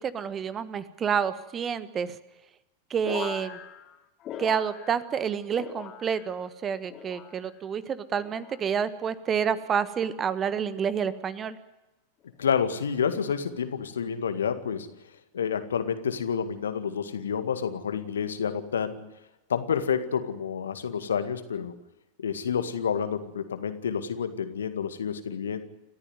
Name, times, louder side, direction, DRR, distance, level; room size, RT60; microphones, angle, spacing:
voice 1, 0.0-2.2 2.9-3.6 4.4-11.6, right 7 dB, 25° right, 15 dB, 1.4 m, -29 dB
sound 1, 3.0-5.3 5.5-6.4 6.9-7.6 8.2-8.7 9.5-9.9 10.9-11.2, left 8 dB, 30° left, 3.3 m, -41 dB
voice 2, 12.4-14.9 15.3-19.1 19.5-21.7 22.2-25.7, left 7 dB, 65° left, 10 dB, 1.9 m, -29 dB
29.5 x 13.5 x 9.5 m, 1.0 s
figure-of-eight pair, 90°, 0 cm